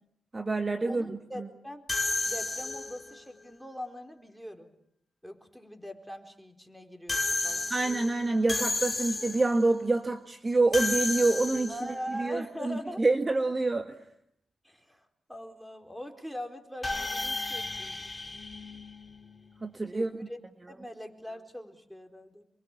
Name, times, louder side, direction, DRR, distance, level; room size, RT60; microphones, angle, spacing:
voice 1, 0.3-1.1 1.4-1.5 7.7-11.8 12.1-14.0 19.6-20.1, right 3 dB, 30° right, 6 dB, 1.7 m, -27 dB
voice 2, 0.8-1.9 2.3-4.7 5.2-7.7 11.7-13.0 14.6-18.1 19.9-22.4, equal, ahead, 5 dB, 4.2 m, -42 dB
sound 1, 1.9-3.2 7.1-9.6 10.7-12.0 16.8-19.4, left 3 dB, 30° left, 2.2 m, -32 dB
27.0 x 23.0 x 7.3 m, 0.74 s
supercardioid pair, 55°, 0 cm